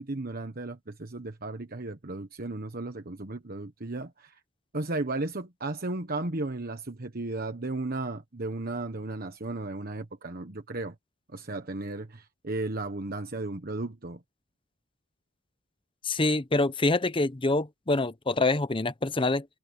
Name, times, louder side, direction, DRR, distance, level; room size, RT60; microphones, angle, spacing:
voice 1, 0.0-4.4 4.7-10.9 11.3-14.2, right 2 dB, 50° right, 1.3 m, -34 dB
voice 2, 16.0-19.5, left 2 dB, 25° left, 0.8 m, -26 dB
head